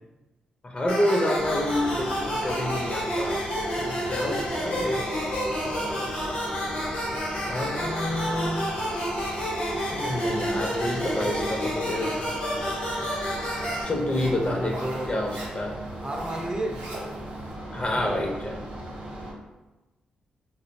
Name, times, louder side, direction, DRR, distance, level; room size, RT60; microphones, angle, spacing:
voice 1, 0.6-3.4 3.8-5.1 7.5-8.6 9.9-12.2 13.8-14.8 15.1-15.8 17.7-18.6, left 1 dB, 35° left, 1 dB, 0.5 m, -28 dB
sound 1, 0.9-13.8, equal, 80° left, 0.8 m, -29 dB
Zipper (clothing), 1.3-17.5, right 1 dB, 90° right, 0.5 m, -46 dB
sound 2, 1.4-19.3, right 1 dB, 55° right, 0.7 m, -38 dB
voice 2, 8.3-8.7 10.9-11.5 14.3-15.1 16.0-16.8 17.9-18.2, right 1 dB, 30° right, 2 dB, 0.4 m, -33 dB
2.4 x 2.0 x 2.5 m, 1.1 s
supercardioid pair, 50°, 3 cm